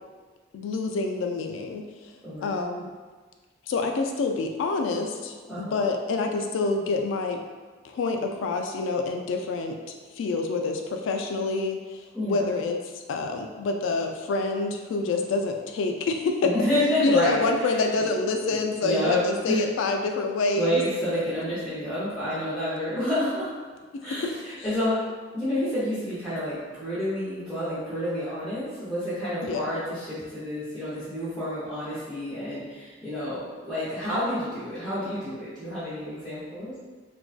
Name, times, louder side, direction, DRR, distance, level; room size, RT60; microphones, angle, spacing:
voice 1, 0.5-1.9 2.4-2.9 3.7-7.4 7.8-12.8 13.1-16.5 17.0-20.8 24.1-24.2 29.4-29.7, left 3 dB, 85° left, 4 dB, 0.3 m, -27 dB
voice 2, 2.2-2.6 5.5-5.8 12.1-12.4 16.4-17.8 18.5-18.6 18.8-19.6 20.6-23.5 24.0-25.0 25.3-36.8, equal, 5° left, -15 dB, 0.7 m, -29 dB
2.5 x 2.2 x 2.3 m, 1.4 s
head